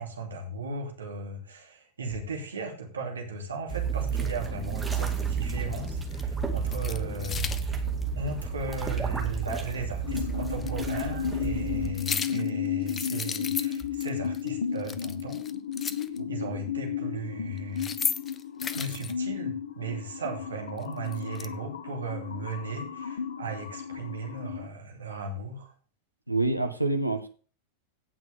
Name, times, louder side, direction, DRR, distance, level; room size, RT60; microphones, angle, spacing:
voice 1, 0.0-7.8 8.2-15.5 16.3-18.2 18.7-25.7, right 3 dB, 70° right, 1 dB, 2.9 m, -36 dB
sound 1, 3.7-11.9, right 5 dB, 5° right, 2.1 m, -31 dB
sound 2, 5.0-5.1 5.8-6.2 6.6-7.6 9.5-9.6 10.6-10.7 11.8-12.5 12.9-14.1 14.3-14.5 14.8-16.2 17.6-19.1 20.8-21.5, left 6 dB, 20° left, 0.8 m, -34 dB
sound 3, 10.0-24.7, left 8 dB, 65° left, 0.9 m, -34 dB
voice 2, 26.3-27.3, right 2 dB, 90° right, 7 dB, 1.2 m, -27 dB
17.5 x 6.1 x 3.6 m, 0.37 s
figure-of-eight pair, 90°, 0 cm